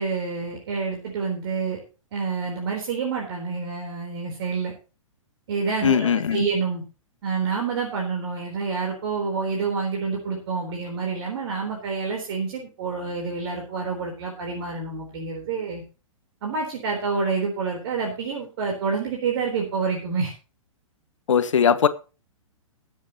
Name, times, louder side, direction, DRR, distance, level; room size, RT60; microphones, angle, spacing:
voice 1, 0.0-1.8 2.1-4.7 5.5-6.8 7.2-15.8 16.4-20.3, right 5 dB, 50° right, 4.0 m, -28 dB
voice 2, 5.8-6.4 21.3-21.9, left 7 dB, 65° left, 1.2 m, -19 dB
22.0 x 7.7 x 3.0 m
figure-of-eight pair, 115°, 17 cm